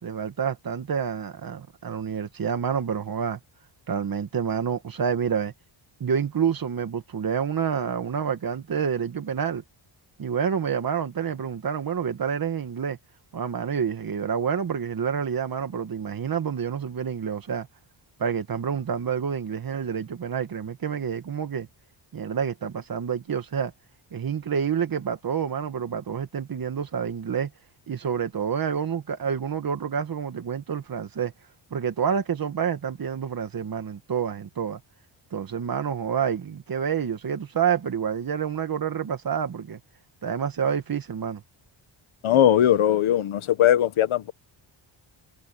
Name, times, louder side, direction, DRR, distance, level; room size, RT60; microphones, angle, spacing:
voice 1, 0.0-3.4 3.9-5.5 6.0-9.6 10.2-13.0 13.3-17.7 18.2-21.7 22.1-23.7 24.1-27.5 27.9-31.3 31.7-34.8 35.3-39.8 40.2-41.4, right 7 dB, 45° right, 2.0 m, -28 dB
voice 2, 42.2-44.3, left 11 dB, 85° left, 1.6 m, -20 dB
wide cardioid pair, 140°, 48 cm